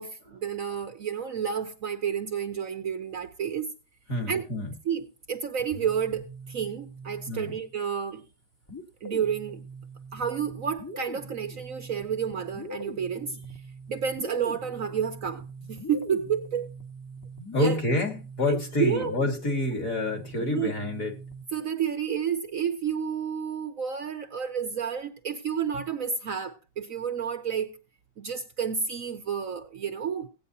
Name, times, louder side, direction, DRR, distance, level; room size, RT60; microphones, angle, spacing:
voice 1, 0.0-3.7 4.3-4.5 4.9-8.2 9.0-9.6 10.1-13.4 13.9-15.4 15.7-16.7 17.5-17.8 18.5-19.1 20.5-20.7 21.5-27.7 28.2-30.3, right 7 dB, 60° right, 1.0 m, -30 dB
voice 2, 4.1-4.7 7.3-7.5 17.5-21.2, left 2 dB, 50° left, 2.3 m, -28 dB
sound 1, 5.6-7.7 8.7-21.6, right 1 dB, 15° left, 0.9 m, -42 dB
17.0 x 9.0 x 2.7 m
omnidirectional pair, 1.9 m